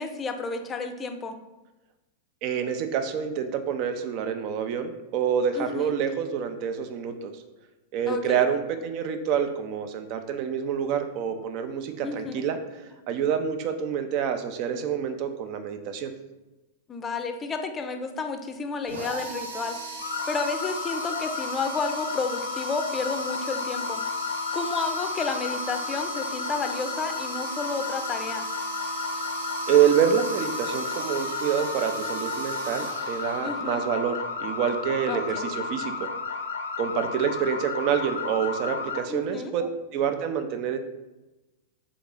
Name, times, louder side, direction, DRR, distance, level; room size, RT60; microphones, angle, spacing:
voice 1, 0.0-1.4 5.6-6.0 8.1-8.5 12.0-12.4 16.9-19.8 20.3-24.0 24.5-28.5 33.4-33.8 35.1-35.5 39.1-39.5, left 4 dB, 20° left, 6 dB, 0.5 m, -31 dB
voice 2, 2.4-7.3 7.9-16.1 29.7-36.1 36.8-40.8, right 8 dB, 45° right, 8 dB, 0.5 m, -27 dB
sound 1, 18.9-33.8, right 1 dB, 70° right, 0.9 m, -37 dB
sound 2, 20.0-39.0, left 5 dB, 75° left, 0.5 m, -33 dB
3.9 x 3.6 x 3.7 m, 1.1 s
figure-of-eight pair, 95°, 0 cm